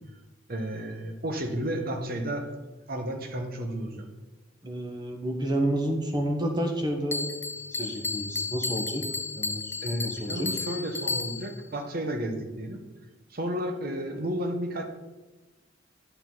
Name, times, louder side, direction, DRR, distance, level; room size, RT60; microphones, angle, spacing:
voice 1, 0.5-2.5 2.9-4.1 9.8-12.8 13.3-14.9, right 1 dB, 50° right, 5 dB, 1.2 m, -32 dB
voice 2, 4.6-7.3 7.7-9.1 9.4-10.5, right 1 dB, 25° right, 3 dB, 1.4 m, -30 dB
Bell, 7.1-11.6, left 4 dB, 10° left, 0.4 m, -33 dB
10.5 x 7.1 x 4.0 m, 1.1 s
head